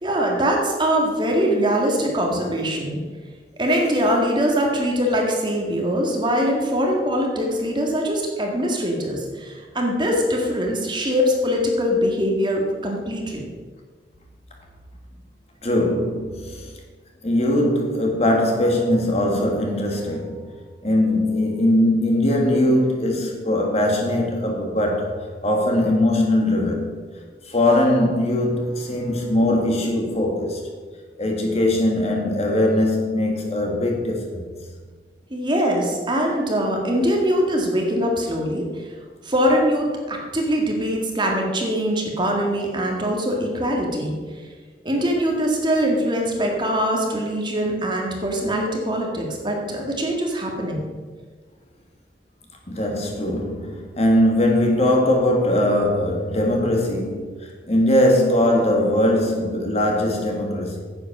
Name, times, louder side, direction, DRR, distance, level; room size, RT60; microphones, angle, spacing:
voice 1, 0.0-3.0 3.6-13.4 35.3-38.7 39.2-44.2 44.8-50.8, equal, 25° right, 0 dB, 1.9 m, -22 dB
voice 2, 15.6-16.7 17.2-20.5 20.8-26.9 27.5-30.6 31.2-34.5 52.7-60.8, left 1 dB, 35° left, 1 dB, 1.9 m, -20 dB
10.0 x 8.2 x 6.0 m, 1.5 s
head